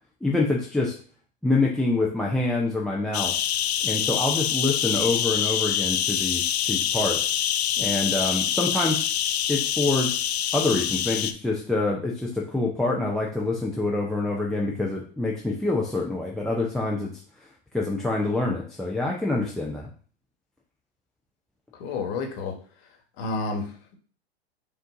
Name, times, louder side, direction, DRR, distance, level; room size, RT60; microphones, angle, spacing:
voice 1, 0.2-0.9 1.4-3.3 3.8-7.3 7.8-9.1 9.5-10.2 10.5-17.1 17.7-19.9, left 2 dB, ahead, -1 dB, 0.4 m, -26 dB
sound 1, 3.1-11.3, left 10 dB, 70° left, 0.5 m, -25 dB
voice 2, 21.8-22.5 23.2-24.0, left 3 dB, 45° left, 3 dB, 1.3 m, -30 dB
5.4 x 2.5 x 3.7 m, 0.43 s
hypercardioid pair, 105°, 33 cm